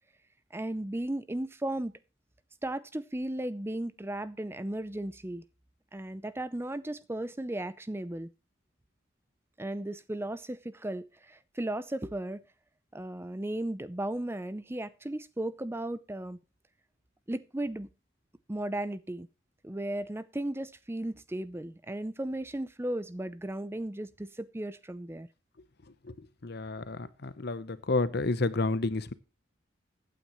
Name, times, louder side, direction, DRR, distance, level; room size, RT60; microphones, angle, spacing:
voice 1, 0.5-1.9 2.6-5.4 5.9-8.3 9.6-12.4 12.9-16.4 17.3-17.9 18.5-19.3 19.6-25.3, right 1 dB, 10° right, 0.5 m, -35 dB
voice 2, 26.4-29.1, left 3 dB, 55° left, 0.8 m, -30 dB
16.0 x 9.2 x 3.0 m
head